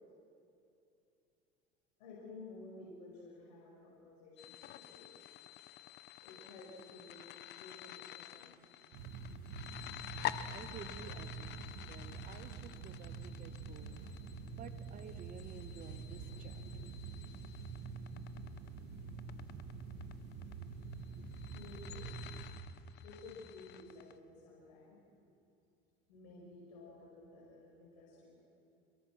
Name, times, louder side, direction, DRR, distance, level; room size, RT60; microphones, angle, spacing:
voice 1, 2.0-5.2 5.7-5.8 6.2-8.6 21.5-22.1 23.0-25.0 26.1-28.4, left 3 dB, 90° left, -4 dB, 5.8 m, -53 dB
sound 1, 4.4-24.1, left 13 dB, 55° left, 1.0 m, -49 dB
sound 2, 8.9-22.6, right 4 dB, 75° right, 2.2 m, -46 dB
voice 2, 10.5-14.2 14.6-17.4 22.7-22.9, right 7 dB, 40° right, 10 dB, 1.5 m, -53 dB
29.0 x 22.0 x 6.0 m, 2.7 s
supercardioid pair, 100°, 20 cm